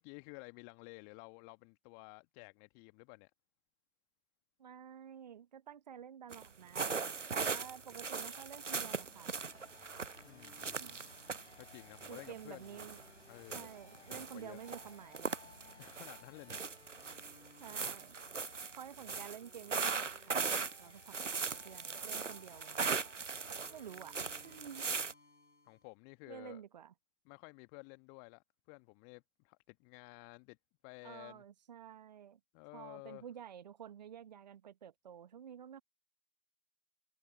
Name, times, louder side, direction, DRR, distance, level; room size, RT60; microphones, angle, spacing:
voice 1, 0.0-3.3 7.5-7.7 10.2-11.0 11.6-12.8 13.3-13.7 14.1-14.6 15.8-16.7 25.6-26.6 27.2-30.6 30.8-31.4 32.5-33.2, left 40 dB or more, 15° left, 1.2 m, -53 dB
voice 2, 4.6-7.0 7.4-9.4 10.8-11.0 12.1-13.0 13.5-15.4 17.6-18.1 18.8-22.9 23.7-24.1 24.4-24.9 26.3-26.9 31.0-32.4 32.7-35.8, right 9 dB, 35° right, 1.1 m, -51 dB
sound 1, 6.3-6.5 6.7-13.0 13.4-14.3 14.6-16.2 16.5-25.1, right 5 dB, 85° right, 0.9 m, -39 dB
sound 2, 8.4-17.6, left 5 dB, 60° left, 6.2 m, -64 dB
sound 3, 9.5-25.9, left 3 dB, 75° left, 5.3 m, -62 dB
figure-of-eight pair, 140°, 36 cm